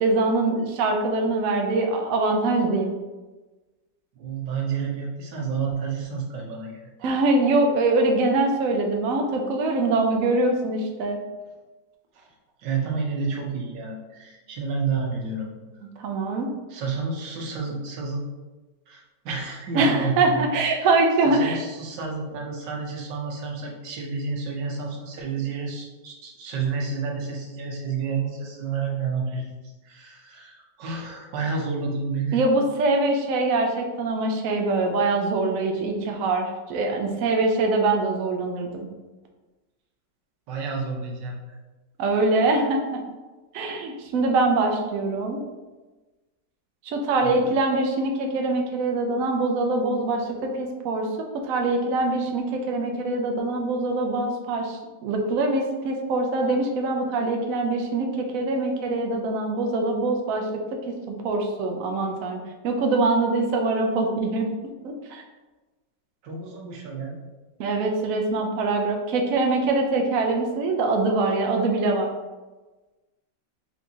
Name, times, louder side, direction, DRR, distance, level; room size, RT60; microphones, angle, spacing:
voice 1, 0.0-2.9 7.0-11.2 16.0-16.5 19.7-21.6 32.3-38.9 42.0-43.0 43.5-45.4 46.8-60.5 60.7-60.9 61.2-64.5 64.8-65.2 67.6-72.1, right 2 dB, 65° right, 2 dB, 0.9 m, -23 dB
voice 2, 4.2-6.9 12.1-12.3 12.6-15.5 16.7-18.2 18.9-20.5 21.2-29.4 29.8-32.4 40.5-41.6 47.2-47.4 66.2-67.2, right 5 dB, 80° right, 0 dB, 1.5 m, -30 dB
4.3 x 3.4 x 2.8 m, 1.2 s
omnidirectional pair, 1.9 m